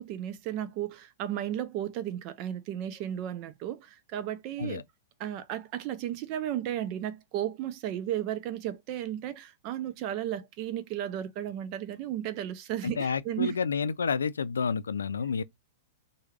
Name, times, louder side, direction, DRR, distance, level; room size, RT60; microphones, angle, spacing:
voice 1, 0.0-4.8 5.2-13.6, right 11 dB, 45° right, 0.5 m, -34 dB
voice 2, 12.8-15.4, left 6 dB, 85° left, 0.4 m, -30 dB
3.0 x 2.2 x 3.4 m
hypercardioid pair, 115°, 0 cm